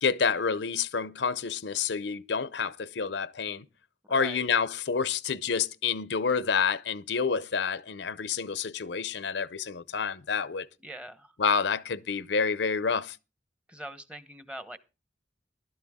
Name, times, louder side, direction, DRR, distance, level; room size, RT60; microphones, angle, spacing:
voice 1, 0.0-3.7 4.1-10.7 11.4-13.2, left 5 dB, 75° left, 0.6 m, -28 dB
voice 2, 4.1-4.5 10.8-11.4 13.7-14.8, right 1 dB, 5° right, 0.9 m, -42 dB
15.0 x 12.5 x 3.6 m
head